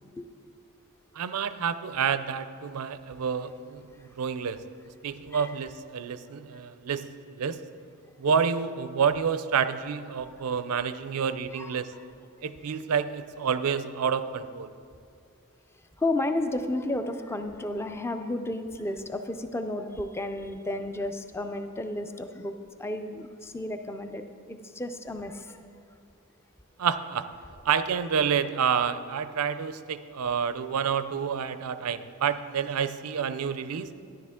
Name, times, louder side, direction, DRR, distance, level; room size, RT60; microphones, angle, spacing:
voice 1, 1.2-4.6 5.0-7.6 8.2-11.9 12.4-14.7 26.8-27.2 27.6-33.9, right 7 dB, 80° right, 12 dB, 0.5 m, -28 dB
voice 2, 16.0-22.5 22.8-25.6, left 1 dB, 10° left, 7 dB, 0.4 m, -32 dB
12.5 x 10.5 x 3.6 m, 2.4 s
head